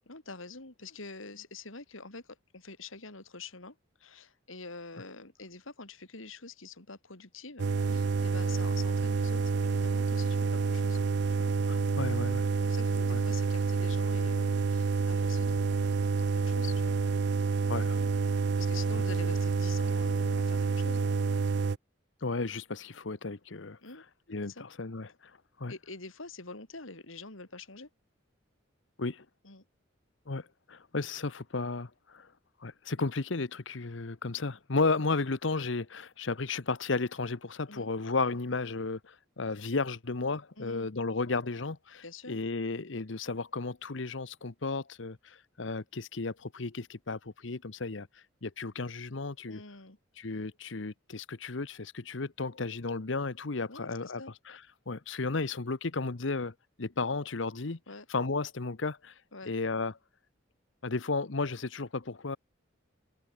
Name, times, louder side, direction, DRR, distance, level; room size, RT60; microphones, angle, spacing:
voice 1, 0.1-11.0 11.3-11.5 12.6-17.0 18.6-21.1 23.8-24.0 24.5-24.7 25.7-27.9 29.4-29.6 37.7-37.9 40.6-40.9 42.0-42.4 49.5-50.0 53.7-54.3 57.9-58.1 59.3-59.5, left 3 dB, 80° left, 4.0 m, -46 dB
sound 1, 7.6-21.8, right 4 dB, 55° right, 0.5 m, -28 dB
voice 2, 11.7-12.5 13.1-13.2 17.7-18.0 18.9-19.0 22.2-23.8 24.3-25.1 25.6-25.7 29.0-29.2 30.3-32.3 32.6-48.1 48.4-49.6 50.2-54.2 54.5-54.6 54.9-57.8 58.1-59.1 59.4-59.9 60.8-62.4, left 3 dB, 65° left, 1.0 m, -34 dB
head